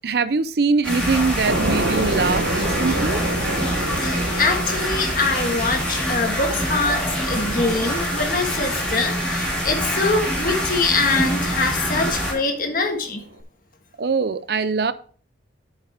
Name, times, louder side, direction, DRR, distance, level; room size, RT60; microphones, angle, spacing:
voice 1, 0.0-3.2 14.0-14.9, right 4 dB, 55° right, 14 dB, 0.5 m, -22 dB
sound 1, 0.8-12.3, equal, 5° left, 3.1 m, -25 dB
sound 2, 1.4-13.4, right 1 dB, 80° right, 1.0 m, -30 dB
voice 2, 3.8-13.2, left 3 dB, 45° left, 4 dB, 1.5 m, -24 dB
8.7 x 7.3 x 3.4 m, 0.43 s
head